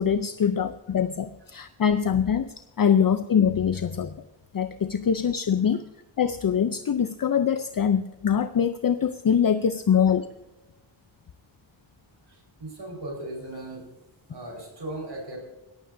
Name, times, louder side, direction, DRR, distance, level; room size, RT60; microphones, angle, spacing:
voice 1, 0.0-4.2 4.5-5.8 6.2-10.3, left 7 dB, 50° left, 11 dB, 0.6 m, -23 dB
voice 2, 12.2-13.9 14.3-15.4, right 1 dB, 65° right, 0 dB, 5.0 m, -37 dB
18.5 x 15.0 x 2.7 m, 1.0 s
wide cardioid pair, 100°, 46 cm